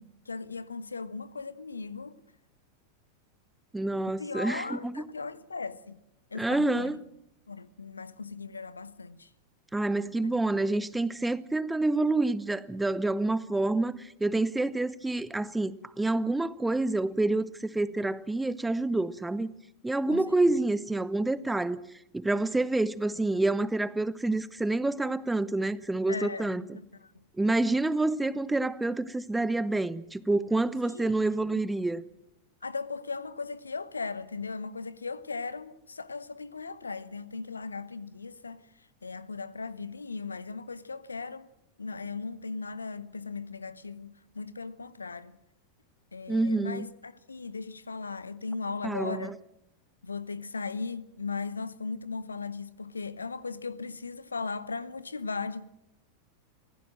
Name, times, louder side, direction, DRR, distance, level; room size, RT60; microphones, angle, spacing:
voice 1, 0.0-2.2 4.1-6.0 6.3-7.0 7.5-9.3 10.2-10.3 20.1-20.5 26.1-27.2 30.8-31.6 32.6-41.5 41.8-45.4 46.1-49.4 50.0-55.6, left 4 dB, 75° left, 1.0 m, -38 dB
voice 2, 3.7-5.0 6.4-7.0 9.7-19.5 19.8-21.8 22.1-26.6 27.4-32.0 46.3-46.9 48.8-49.3, right 2 dB, 5° right, 0.8 m, -28 dB
25.5 x 16.5 x 7.6 m
figure-of-eight pair, 90°, 0 cm